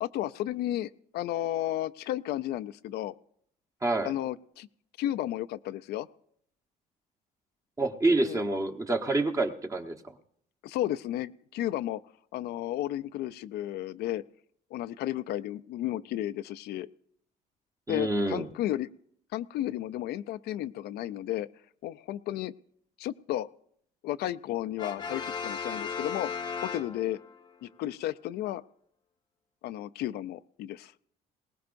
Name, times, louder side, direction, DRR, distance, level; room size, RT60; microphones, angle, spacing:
voice 1, 0.0-3.1 4.0-4.7 5.0-6.1 8.2-8.4 10.6-12.0 12.3-14.2 14.7-16.9 17.9-18.9 19.3-21.5 21.8-22.5 23.0-23.5 24.0-26.3 26.6-27.2 27.6-28.6 29.6-30.9, left 13 dB, 75° left, 13 dB, 0.5 m, -33 dB
voice 2, 3.8-4.1 7.8-10.0 17.9-18.5, right 2 dB, 20° right, 5 dB, 1.1 m, -27 dB
Brass instrument, 24.8-27.4, left 6 dB, 25° left, 0.8 m, -36 dB
20.5 x 19.0 x 2.6 m, 0.68 s
cardioid pair, 110°, 17 cm